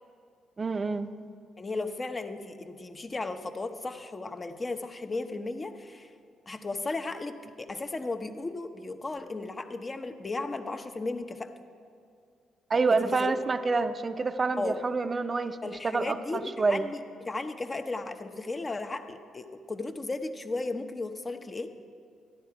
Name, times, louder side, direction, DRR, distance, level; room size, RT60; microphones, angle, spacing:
voice 1, 0.6-1.1 12.7-16.9, right 4 dB, 35° right, 10 dB, 0.6 m, -28 dB
voice 2, 1.6-6.1 6.5-11.5 13.0-13.4 14.6-14.8 15.6-21.7, left 3 dB, 30° left, 7 dB, 0.8 m, -35 dB
13.5 x 11.0 x 4.7 m, 2.3 s
cardioid pair, 85°, 0 cm